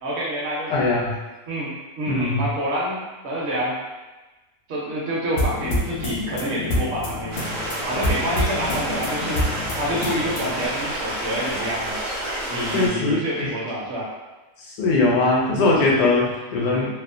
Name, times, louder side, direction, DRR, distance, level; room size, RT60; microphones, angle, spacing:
voice 1, 0.0-0.9 1.5-3.8 4.7-7.4 7.9-9.5 9.8-12.0 12.5-14.1 16.7-16.9, equal, 55° right, -5 dB, 0.9 m, -27 dB
voice 2, 0.7-1.2 2.1-2.5 10.6-10.7 12.0-12.1 12.7-13.5 14.6-16.9, left 2 dB, 85° left, -3 dB, 1.1 m, -21 dB
sound 1, 5.4-10.7, left 1 dB, 60° left, 0.6 m, -27 dB
Stream, 7.3-12.9, right 1 dB, 75° right, 0.4 m, -29 dB
2.8 x 2.0 x 2.5 m, 1.1 s
omnidirectional pair, 1.6 m